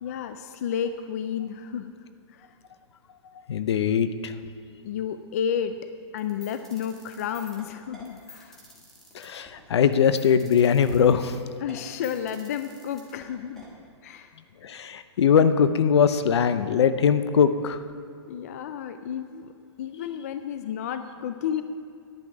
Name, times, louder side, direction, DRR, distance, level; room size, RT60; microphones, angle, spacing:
voice 1, 0.0-1.9 2.3-2.5 4.8-5.8 6.1-8.6 11.6-13.6 14.0-14.4 18.3-19.5 19.8-21.6, left 8 dB, 35° left, 9 dB, 0.3 m, -31 dB
voice 2, 3.5-4.3 9.1-11.4 14.6-17.8, left 7 dB, 65° left, 12 dB, 0.7 m, -21 dB
sound 1, 6.2-13.7, left 1 dB, 5° left, 1.3 m, -49 dB
11.0 x 9.9 x 4.9 m, 2.4 s
hypercardioid pair, 170°, 15 cm